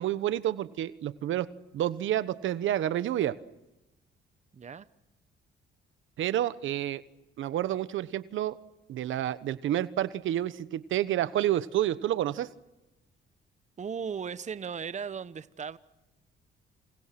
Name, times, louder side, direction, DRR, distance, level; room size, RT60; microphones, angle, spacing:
voice 1, 0.0-1.5 1.7-3.3 6.2-7.0 7.4-8.6 8.9-12.5, right 12 dB, 75° right, 1.2 m, -29 dB
voice 2, 4.5-4.9 13.8-15.8, right 6 dB, 35° right, 1.0 m, -36 dB
29.5 x 27.5 x 6.0 m
cardioid pair, 90°, 20 cm